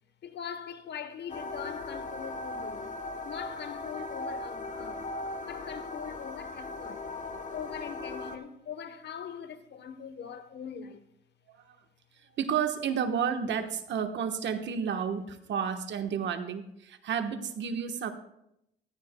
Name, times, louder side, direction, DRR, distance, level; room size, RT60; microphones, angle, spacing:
voice 1, 0.2-2.9 3.2-5.1 5.4-7.0 7.5-11.0, left 7 dB, 60° left, 1.0 m, -42 dB
sound 1, 1.3-8.4, left 2 dB, 40° left, 1.1 m, -38 dB
voice 2, 12.4-18.1, right 7 dB, 65° right, 1.1 m, -31 dB
17.5 x 13.0 x 2.2 m
cardioid pair, 90°, 20 cm